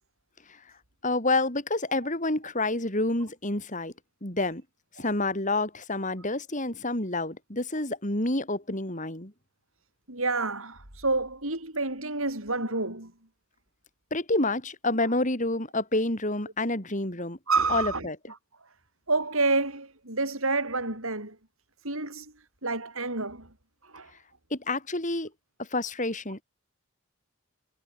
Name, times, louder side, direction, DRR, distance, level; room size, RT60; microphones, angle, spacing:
voice 1, 1.0-3.9 4.2-4.6 5.0-9.3 14.1-17.4 17.7-18.2 24.5-25.3 25.6-26.4, left 2 dB, 35° left, 4.6 m, -28 dB
voice 2, 10.1-13.1 17.5-18.1 19.1-21.4 21.8-22.3 22.6-23.5 23.8-24.1, right 3 dB, 70° right, 7.8 m, -29 dB
head